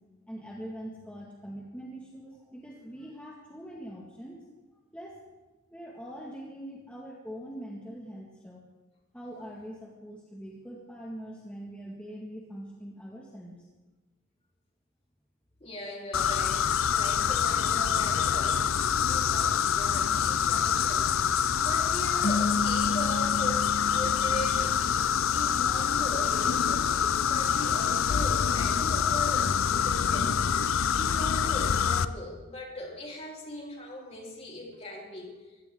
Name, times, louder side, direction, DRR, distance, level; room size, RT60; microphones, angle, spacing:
voice 1, 0.3-4.4 4.9-5.2 5.7-8.6 9.1-13.6, equal, 5° left, -3 dB, 1.8 m, -43 dB
voice 2, 15.6-30.4 30.9-35.4, left 1 dB, 30° left, -2 dB, 3.8 m, -39 dB
sound 1, 16.1-32.1, left 7 dB, 65° left, 0.6 m, -26 dB
sound 2, 22.2-25.6, left 2 dB, 50° left, 1.0 m, -33 dB
23.0 x 16.5 x 3.8 m, 1.2 s
head